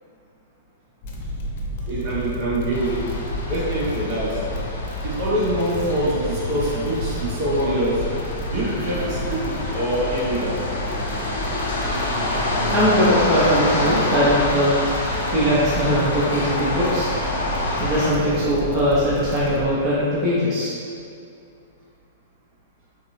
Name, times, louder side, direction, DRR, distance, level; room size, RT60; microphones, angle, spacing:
sound 1, 1.0-19.7, left 1 dB, 50° left, 0.8 m, -31 dB
voice 1, 1.9-3.1 3.5-4.4 5.0-8.1 8.5-10.7, right 1 dB, 50° right, -6 dB, 1.4 m, -24 dB
sound 2, 2.7-18.1, left 2 dB, 75° left, 1.1 m, -28 dB
sound 3, 8.6-19.0, right 2 dB, 65° right, 1.1 m, -36 dB
voice 2, 12.7-14.8 15.3-17.1 17.8-20.7, equal, 30° right, -10 dB, 1.1 m, -20 dB
5.0 x 2.9 x 3.4 m, 2.5 s
hypercardioid pair, 110°, 0 cm